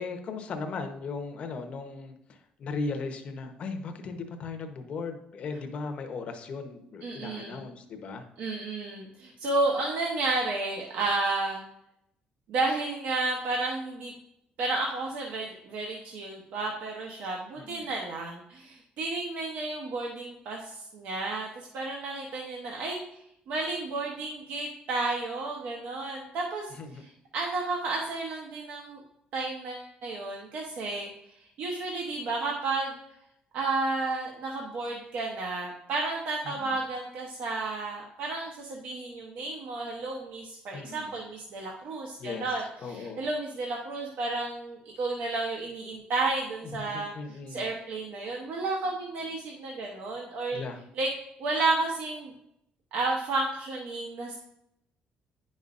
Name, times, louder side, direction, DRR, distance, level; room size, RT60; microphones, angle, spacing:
voice 1, 0.0-8.3 17.6-17.9 26.7-27.0 36.4-36.8 40.7-41.2 42.2-43.3 46.8-47.7 50.5-50.8, left 4 dB, 40° left, 5 dB, 0.8 m, -37 dB
voice 2, 7.0-7.6 8.4-11.6 12.5-14.1 14.6-23.0 23.5-26.7 27.3-29.0 29.3-31.1 31.6-33.0 33.5-47.1 47.5-50.6 51.0-51.1 51.4-52.3 52.9-54.3, right 3 dB, 65° right, -1 dB, 0.9 m, -32 dB
10.0 x 5.4 x 2.5 m, 0.79 s
cardioid pair, 175°, 3 cm